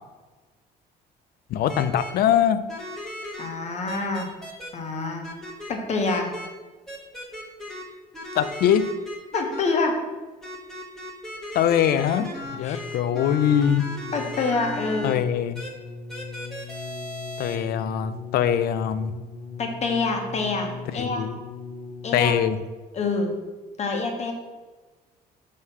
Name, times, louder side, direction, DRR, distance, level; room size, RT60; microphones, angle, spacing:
voice 1, 1.5-2.6 8.4-8.9 11.5-13.9 15.0-15.6 17.4-19.1 20.9-21.4 22.1-22.6, left 9 dB, 65° left, 13 dB, 0.4 m, -22 dB
sound 1, 1.7-2.1 2.7-3.5 3.9-4.7 5.2-5.7 6.0-6.5 6.9-7.8 8.1-9.6 10.4-15.1 15.5-15.7 16.1-17.6, left 1 dB, 5° left, 1.3 m, -36 dB
voice 2, 3.4-4.3 4.7-5.2 5.7-6.3 9.3-10.0 12.6-12.8 14.1-15.2 19.6-21.3 22.0-22.3 22.9-23.3 23.8-24.3, left 3 dB, 40° left, 3 dB, 1.1 m, -26 dB
sound 2, 12.4-22.5 23.4-23.5, left 6 dB, 90° left, 0.9 m, -40 dB
5.7 x 3.2 x 5.5 m, 1.3 s
cardioid pair, 110°, 17 cm